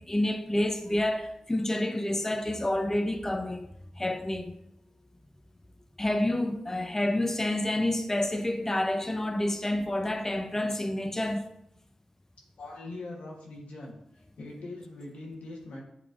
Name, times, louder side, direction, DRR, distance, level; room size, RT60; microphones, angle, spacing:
voice 1, 0.0-3.7 4.0-4.5 6.0-11.4, left 1 dB, 20° left, 0.4 m, -28 dB
voice 2, 12.6-14.0 14.4-15.8, left 2 dB, 85° left, 1.1 m, -41 dB
6.8 x 3.2 x 2.5 m
cardioid pair, 45°, 2 cm